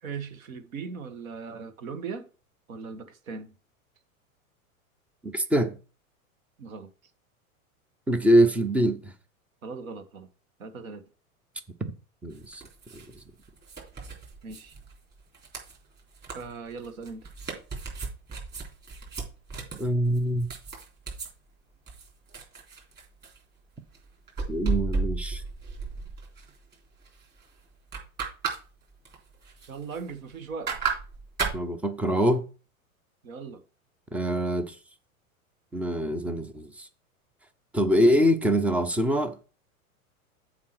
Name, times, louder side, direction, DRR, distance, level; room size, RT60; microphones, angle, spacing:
voice 1, 0.0-2.3 2.7-3.5 6.6-6.9 9.6-10.3 10.6-11.1 14.4-14.8 16.3-17.3 29.7-30.7 33.2-33.6, right 5 dB, 70° right, 1.5 m, -39 dB
voice 2, 5.2-5.8 8.1-9.1 11.8-11.9 12.2-12.6 12.9-13.1 19.8-20.5 24.5-25.4 31.5-32.5 34.1-34.8 35.7-36.9 37.7-39.4, equal, 5° right, 0.3 m, -24 dB
sound 1, 12.3-21.3 21.9-23.4 23.9-26.8 27.0-27.5 27.7-28.6 28.9-30.3 30.7-31.6, right 4 dB, 25° right, 3.7 m, -34 dB
7.3 x 4.8 x 5.9 m
hypercardioid pair, 100°, 43 cm